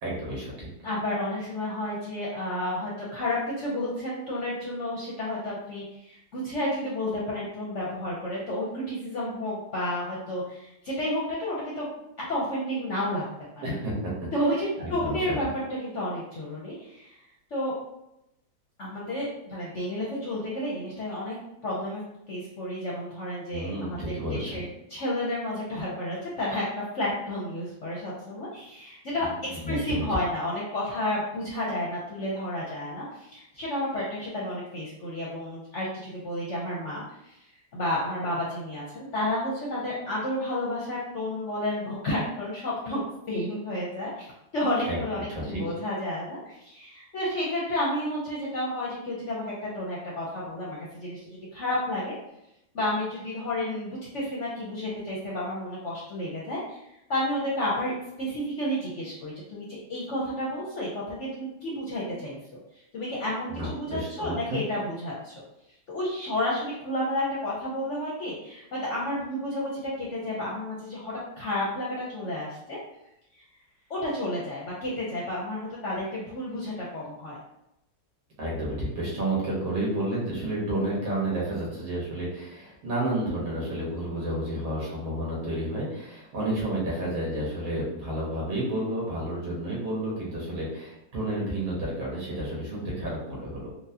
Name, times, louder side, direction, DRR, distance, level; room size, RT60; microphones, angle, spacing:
voice 1, 0.0-0.7 13.6-14.3 14.8-15.2 23.5-24.6 29.2-30.0 44.9-45.0 45.3-45.6 63.5-64.6 78.4-93.7, right 1 dB, 85° right, -5 dB, 2.0 m, -31 dB
voice 2, 0.8-11.9 12.3-13.3 13.6-13.7 14.3-15.5 15.8-17.2 17.5-17.7 18.8-21.4 21.6-22.0 22.3-24.6 24.9-37.4 37.7-43.0 43.3-52.1 52.7-56.8 57.1-57.9 58.2-62.4 62.9-65.3 65.9-72.8 73.9-77.4, left 1 dB, 60° left, -5 dB, 0.7 m, -31 dB
4.5 x 2.1 x 2.7 m, 0.86 s
omnidirectional pair, 2.0 m